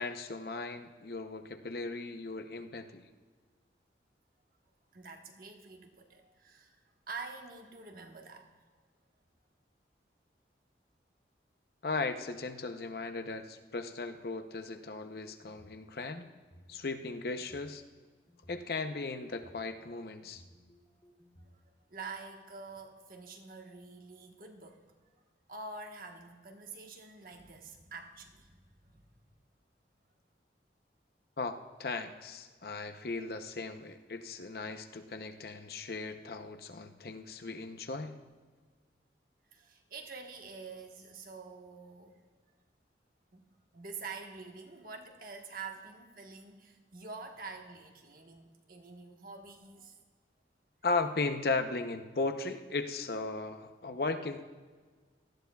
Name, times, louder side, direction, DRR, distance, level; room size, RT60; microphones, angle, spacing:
voice 1, 0.0-3.1 11.8-16.3 16.7-17.8 18.5-20.4 31.4-38.2 50.8-54.4, left 3 dB, 60° left, 7 dB, 0.7 m, -37 dB
voice 2, 4.9-6.8 7.1-8.5 21.5-21.6 21.9-24.9 25.5-29.1 39.5-42.2 43.3-43.4 43.7-50.0, right 4 dB, 55° right, 3 dB, 1.2 m, -47 dB
sound 1, 15.1-15.8 16.3-17.7 18.3-19.6 20.2-21.5, equal, 15° left, 2.1 m, -60 dB
18.0 x 13.5 x 2.3 m, 1.5 s
head